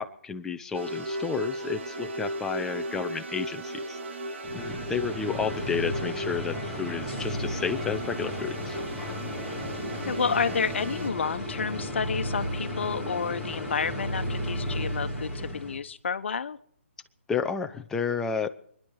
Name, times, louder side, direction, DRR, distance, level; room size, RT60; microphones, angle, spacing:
voice 1, 0.0-4.0 4.5-8.8 17.3-18.5, left 6 dB, 5° left, 7 dB, 0.7 m, -31 dB
sound 1, 0.7-11.1, right 1 dB, 60° right, 2.7 m, -36 dB
sound 2, 4.4-15.8, left 1 dB, 10° right, 2.5 m, -34 dB
voice 2, 10.0-16.6, left 6 dB, 60° left, 10 dB, 1.2 m, -30 dB
24.5 x 10.5 x 4.8 m, 0.67 s
hypercardioid pair, 150°, 7 cm